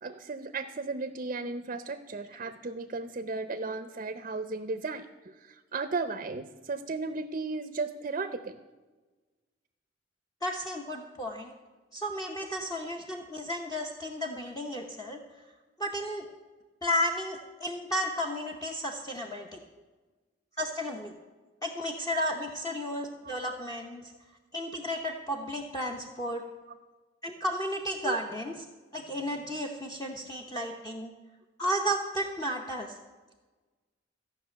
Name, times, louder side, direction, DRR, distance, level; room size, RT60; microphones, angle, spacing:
voice 1, 0.0-5.1 5.4-8.6 12.4-12.7 23.2-23.4 28.0-28.2, right 3 dB, 45° right, 10 dB, 0.6 m, -35 dB
voice 2, 10.4-11.5 11.9-15.2 15.8-16.3 16.8-19.6 20.6-21.1 21.6-24.1 24.5-26.4 27.2-28.5 28.9-31.1 31.6-33.0, equal, 20° left, 1 dB, 0.9 m, -33 dB
14.0 x 5.9 x 8.9 m, 1.3 s
head